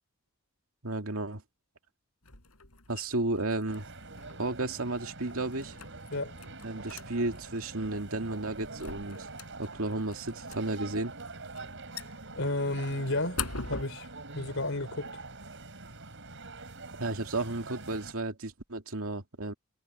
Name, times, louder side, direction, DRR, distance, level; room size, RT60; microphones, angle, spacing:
voice 1, 0.8-1.4 2.9-3.9 4.4-5.8 6.6-9.3 9.6-11.1 17.0-19.5, right 2 dB, 80° right, 2.4 m, -33 dB
sound 1, 2.2-13.8, left 5 dB, 80° left, 5.3 m, -45 dB
sound 2, 3.7-18.1, right 3 dB, 60° right, 7.2 m, -45 dB
voice 2, 12.4-13.4 13.7-14.1 14.3-15.2, left 2 dB, 65° left, 5.0 m, -32 dB
head